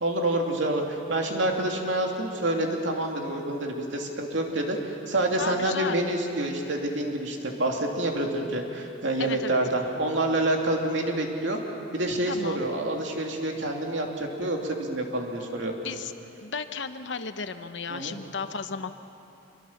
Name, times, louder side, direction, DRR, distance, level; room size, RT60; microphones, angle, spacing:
voice 1, 0.0-11.6 11.9-15.7 17.9-18.2, right 1 dB, 65° right, 1 dB, 2.7 m, -27 dB
voice 2, 5.4-6.0 9.2-9.6 12.3-12.6 15.8-16.1 16.4-18.9, left 5 dB, 65° left, 9 dB, 0.9 m, -34 dB
26.0 x 23.0 x 7.2 m, 2.8 s
head